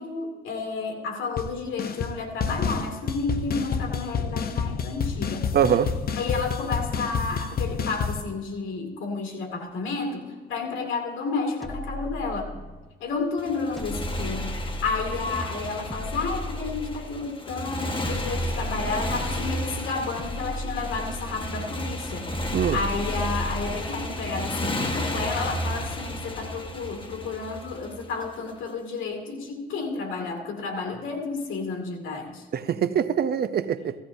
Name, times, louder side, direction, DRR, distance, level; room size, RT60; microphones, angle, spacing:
voice 1, 0.0-5.5 6.2-12.6 13.0-22.3 22.7-32.5, left 4 dB, 80° left, 2.3 m, -31 dB
sound 1, 1.4-1.5 1.8-2.1 2.4-8.2, left 6 dB, 50° left, 0.8 m, -29 dB
voice 2, 5.5-5.9 22.5-22.8 32.5-34.0, right 8 dB, 55° right, 0.6 m, -23 dB
sound 2, 11.6-12.9 13.8-15.4 15.9-17.3 18.0-19.7 20.2-21.6 22.3-23.9, equal, ahead, 0.8 m, -35 dB
Motorcycle, 13.4-28.5, left 1 dB, 25° left, 1.3 m, -33 dB
16.5 x 15.0 x 2.7 m
cardioid pair, 90°, 20 cm